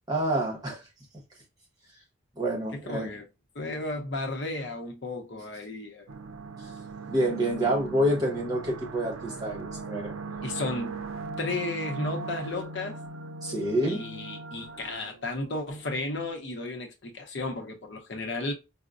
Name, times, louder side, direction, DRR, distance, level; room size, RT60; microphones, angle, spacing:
voice 1, 0.1-0.8 2.4-3.1 6.6-6.7 7.1-10.1 13.4-14.0, right 1 dB, 20° right, 1.0 m, -27 dB
voice 2, 2.7-3.2 3.5-6.1 10.4-11.0 11.4-13.0 13.8-18.5, left 2 dB, 55° left, 0.7 m, -34 dB
sound 1, 6.1-15.8, right 3 dB, 90° right, 0.5 m, -39 dB
4.9 x 2.0 x 2.4 m
head